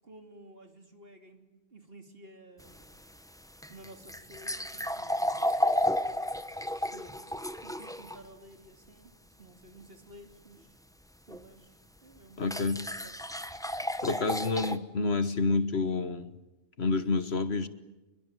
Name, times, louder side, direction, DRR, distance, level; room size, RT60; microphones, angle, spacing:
voice 1, 0.0-3.0 3.7-5.7 6.7-10.7 11.3-13.1, right 1 dB, 45° right, 5 dB, 3.3 m, -53 dB
sound 1, 2.6-8.2 11.3-11.4 12.5-14.8, left 1 dB, 5° left, 1.1 m, -32 dB
voice 2, 12.4-12.9 14.0-16.3 16.8-17.7, left 3 dB, 55° left, 12 dB, 1.5 m, -28 dB
28.5 x 22.5 x 9.1 m, 1.0 s
omnidirectional pair, 1.3 m